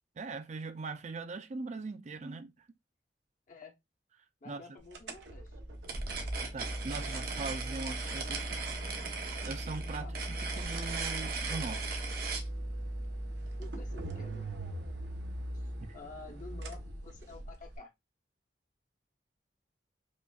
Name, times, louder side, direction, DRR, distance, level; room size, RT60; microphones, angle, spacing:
voice 1, 0.2-2.7 4.5-4.6 6.4-8.7 9.4-12.0 15.8-16.0, right 3 dB, 40° right, 0.4 m, -41 dB
voice 2, 4.4-5.6 10.0-10.2 13.6-14.5 15.5-17.9, left 3 dB, 50° left, 0.8 m, -50 dB
sound 1, 4.9-17.8, right 1 dB, 85° right, 0.7 m, -39 dB
sound 2, 5.8-12.5, right 5 dB, 60° right, 0.9 m, -39 dB
5.1 x 2.4 x 2.3 m
head